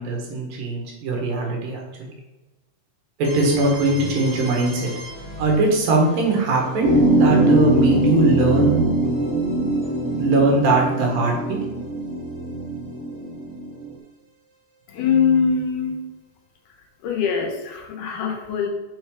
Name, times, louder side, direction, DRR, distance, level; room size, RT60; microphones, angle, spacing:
voice 1, 0.0-1.8 3.2-4.9 5.4-8.8 10.1-11.6, right 2 dB, 85° right, -1 dB, 3.2 m, -20 dB
sound 1, 3.2-13.0, equal, 25° left, 1.9 m, -40 dB
sound 2, 6.8-13.8, right 1 dB, 50° left, 1.5 m, -22 dB
voice 2, 14.9-16.0 17.0-18.7, left 6 dB, 75° left, 2 dB, 2.5 m, -22 dB
6.6 x 4.4 x 4.7 m, 1.1 s
omnidirectional pair, 3.9 m